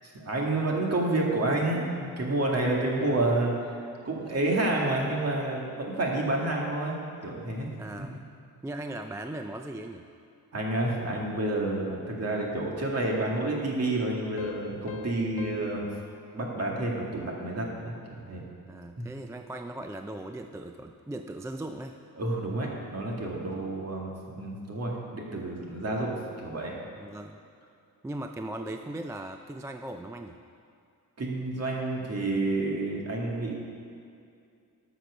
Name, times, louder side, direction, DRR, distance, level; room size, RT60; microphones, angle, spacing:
voice 1, 0.1-3.7 4.0-7.7 10.5-15.9 16.3-18.4 19.0-19.1 22.2-26.7 31.2-33.5, right 2 dB, 45° right, -2 dB, 2.0 m, -29 dB
voice 2, 7.8-8.2 8.6-10.0 15.7-15.9 18.7-22.0 27.0-27.4 28.0-30.4, right 1 dB, 10° right, 5 dB, 0.3 m, -38 dB
sound 1, 14.4-17.7, left 4 dB, 65° left, 0.7 m, -46 dB
13.0 x 6.0 x 6.3 m, 2.4 s
wide cardioid pair, 140°, 36 cm